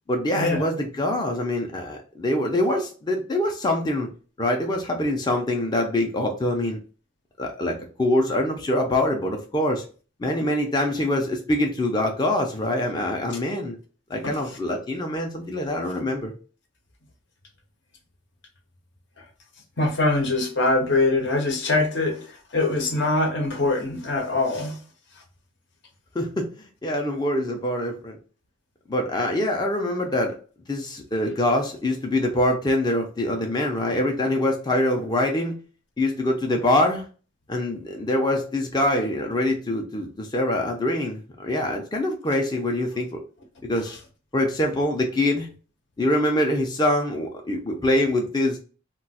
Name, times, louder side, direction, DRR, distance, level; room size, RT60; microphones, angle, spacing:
voice 1, 0.1-4.1 4.4-6.8 7.4-9.8 10.2-13.8 14.1-16.3 26.1-28.2 28.9-30.4 30.7-35.6 36.0-37.0 37.5-43.2 43.6-44.0 44.3-45.5 46.0-48.6, left 1 dB, 20° left, 0.4 m, -24 dB
voice 2, 19.8-22.3 22.5-24.8, left 2 dB, 55° left, 0.7 m, -23 dB
2.3 x 2.2 x 3.9 m
head